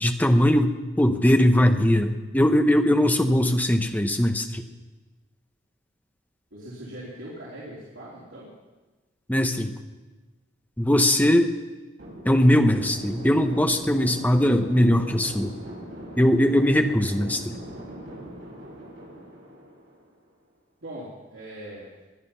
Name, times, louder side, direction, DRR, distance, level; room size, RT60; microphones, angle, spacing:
voice 1, 0.0-4.6 9.3-9.7 10.8-11.5 12.2-15.5 16.2-17.5, left 1 dB, 10° left, 7 dB, 0.8 m, -20 dB
voice 2, 6.5-8.5 20.8-21.9, right 1 dB, 90° right, -7 dB, 3.6 m, -40 dB
sound 1, 12.0-20.3, equal, 60° right, 6.5 m, -41 dB
20.5 x 11.0 x 5.7 m, 1.2 s
head